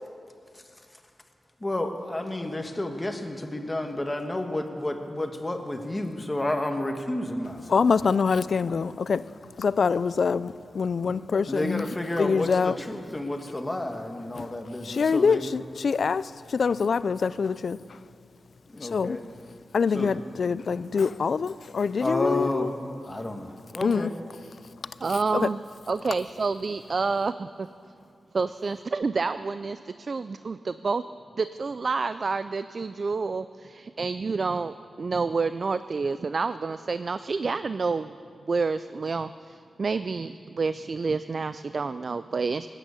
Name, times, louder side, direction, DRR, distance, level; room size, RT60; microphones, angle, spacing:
voice 1, 0.5-1.0 1.6-7.8 11.5-15.4 18.7-19.2 19.9-20.2 22.0-24.1, left 1 dB, 15° left, 4 dB, 1.3 m, -31 dB
voice 2, 7.7-9.3 9.6-11.9 12.2-12.7 14.4-14.5 14.8-17.8 18.8-19.2 19.7-22.7 23.8-24.1 25.3-25.5, left 5 dB, 60° left, 17 dB, 0.3 m, -25 dB
voice 3, 25.0-25.6 25.9-27.7 28.3-31.0 31.4-38.1 38.5-42.7, right 4 dB, 45° right, 12 dB, 0.3 m, -29 dB
18.5 x 9.1 x 8.3 m, 2.4 s
wide cardioid pair, 120°, 0 cm